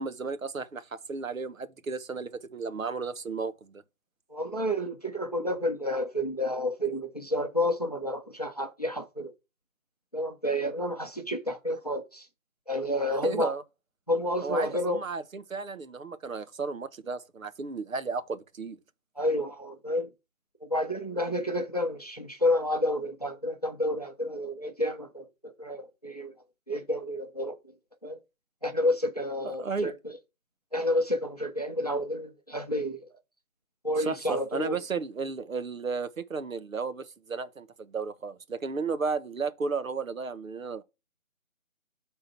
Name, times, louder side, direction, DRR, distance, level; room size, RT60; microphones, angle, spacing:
voice 1, 0.0-3.8 13.2-13.6 14.4-18.8 29.4-29.9 34.0-40.8, right 4 dB, 70° right, 1.0 m, -34 dB
voice 2, 4.3-9.3 10.1-12.3 12.7-13.5 14.1-15.0 19.2-20.1 20.6-26.3 26.7-27.7 28.0-28.2 28.6-29.9 30.7-33.1 33.8-34.7, left 1 dB, 30° left, 0.7 m, -30 dB
8.2 x 3.8 x 4.5 m
figure-of-eight pair, 175°, 42 cm